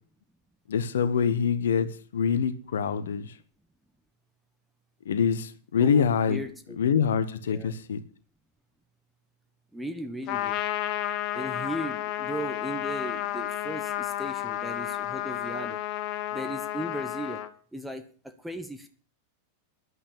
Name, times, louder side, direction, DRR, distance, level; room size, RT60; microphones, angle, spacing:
voice 1, 0.7-3.3 5.1-6.4 6.8-8.0, left 7 dB, 65° left, 1.0 m, -25 dB
voice 2, 5.8-7.0 7.5-7.7 9.7-10.6 11.3-15.8 16.3-17.4 17.7-18.9, right 1 dB, 5° right, 1.1 m, -37 dB
Trumpet, 10.3-17.5, left 12 dB, 40° left, 1.1 m, -32 dB
11.0 x 8.8 x 6.9 m
figure-of-eight pair, 90°, 0 cm